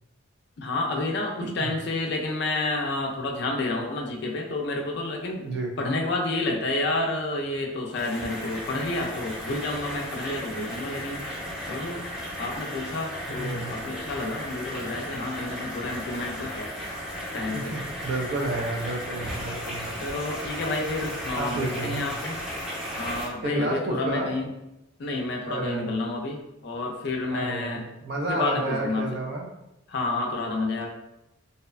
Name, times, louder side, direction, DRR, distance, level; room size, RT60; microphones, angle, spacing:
voice 1, 0.6-5.5 5.8-11.2 11.7-12.0 12.4-16.7 17.3-17.7 20.0-22.4 22.9-24.5 25.0-27.8 28.3-29.1 29.9-30.9, left 2 dB, 55° left, 1 dB, 0.4 m, -30 dB
sound 1, 7.9-23.3, equal, 5° right, 0.7 m, -35 dB
voice 2, 13.3-13.8 17.7-19.9 21.3-22.0 23.4-24.3 25.5-25.9 27.3-29.5, right 2 dB, 55° right, 1 dB, 0.4 m, -30 dB
2.6 x 2.1 x 2.4 m, 0.89 s
head